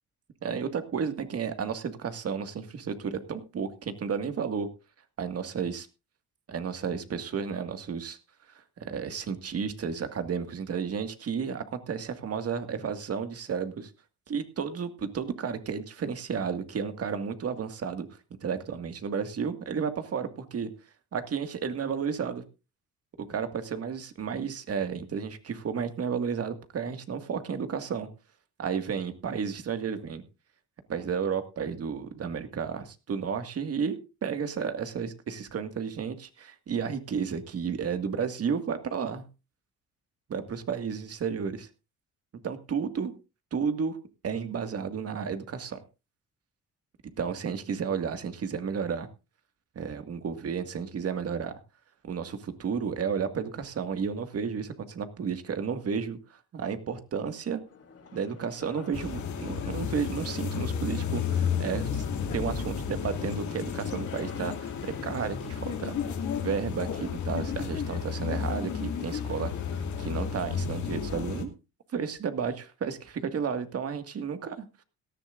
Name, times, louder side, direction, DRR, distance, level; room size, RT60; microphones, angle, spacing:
voice 1, 0.4-4.7 5.2-5.9 6.5-8.2 8.8-13.9 14.3-18.1 18.4-20.7 21.1-22.4 23.3-28.1 28.6-30.2 30.9-39.3 40.3-41.7 42.4-43.1 43.5-44.0 44.2-45.8 47.2-49.1 49.8-51.5 52.0-56.2 56.5-57.6 58.1-62.0 62.3-66.0 66.4-71.5 71.9-74.7, right 6 dB, 50° right, 8 dB, 1.9 m, -32 dB
sound 1, 57.7-70.3, left 5 dB, 55° left, 3.6 m, -48 dB
sound 2, 58.9-71.4, left 7 dB, 70° left, 2.4 m, -32 dB
18.0 x 13.5 x 2.5 m, 0.29 s
cardioid pair, 90°, 30 cm